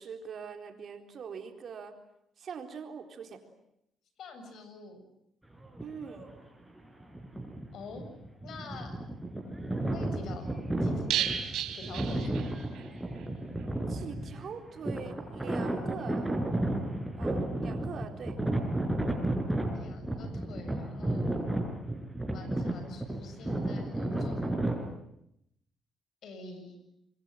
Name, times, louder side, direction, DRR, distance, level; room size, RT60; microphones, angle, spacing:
voice 1, 0.0-2.0 2.4-3.4 5.8-6.3 13.9-16.4 17.2-18.4, right 6 dB, 60° right, 5 dB, 4.1 m, -43 dB
voice 2, 4.2-5.0 7.7-8.1 8.4-9.0 9.9-10.5 10.8-12.4 19.7-21.4 22.3-24.5 26.2-26.8, left 3 dB, 70° left, 8 dB, 7.6 m, -46 dB
sound 1, 5.6-6.4 7.0-24.9, right 1 dB, 5° right, 6.1 m, -33 dB
sound 2, 11.1-12.9 13.2-13.3 13.6-13.7, right 10 dB, 80° right, 4.0 m, -33 dB
27.5 x 22.5 x 9.4 m, 0.79 s
cardioid pair, 90°, 0 cm